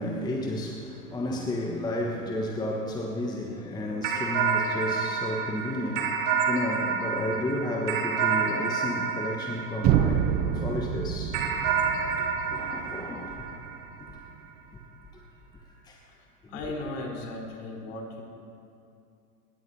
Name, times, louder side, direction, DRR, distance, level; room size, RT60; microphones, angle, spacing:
voice 1, 0.0-10.3 10.5-11.4 12.2-13.4 14.1-14.2 15.1-15.2 15.8-16.0 16.4-16.6, left 1 dB, 10° left, 1 dB, 1.2 m, -32 dB
sound 1, 4.0-10.6 11.3-14.1, right 6 dB, 55° right, 2.5 m, -29 dB
sound 2, 9.8-13.8, right 9 dB, 20° right, 0.5 m, -28 dB
voice 2, 16.5-18.2, left 2 dB, 50° left, -1 dB, 4.2 m, -36 dB
24.0 x 20.0 x 2.8 m, 2.5 s
figure-of-eight pair, 100°, 47 cm